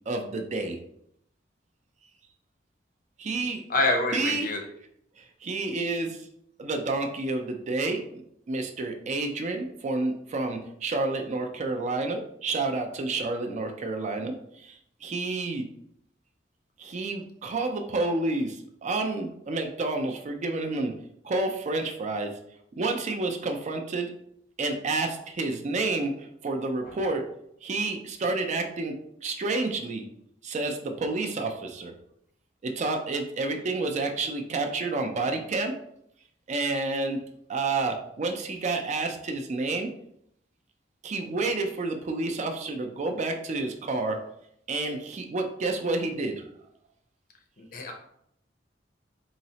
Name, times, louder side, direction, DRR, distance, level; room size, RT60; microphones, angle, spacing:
voice 1, 0.1-0.8 3.2-3.6 4.1-4.5 5.2-6.3 6.6-15.7 16.8-20.9 21.2-22.3 22.7-24.1 24.6-27.3 27.6-29.0 29.2-30.0 30.4-31.9 32.6-35.7 36.5-37.2 37.5-39.9 41.0-44.2 44.7-46.4, right 3 dB, 40° right, 4 dB, 0.4 m, -29 dB
voice 2, 3.7-4.6 47.7-47.9, left 2 dB, 50° left, 2 dB, 0.5 m, -26 dB
3.8 x 2.0 x 2.7 m, 0.73 s
head